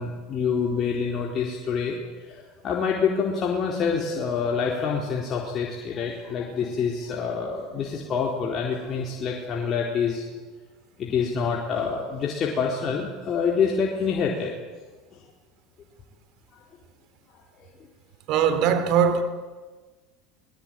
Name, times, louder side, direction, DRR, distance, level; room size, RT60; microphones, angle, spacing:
voice 1, 0.0-2.0 2.3-10.2 11.0-14.5, left 6 dB, 40° left, 4.3 m, -26 dB
voice 2, 18.3-19.2, right 7 dB, 60° right, 3.6 m, -20 dB
22.0 x 21.0 x 9.2 m
hypercardioid pair, 90°, 0 cm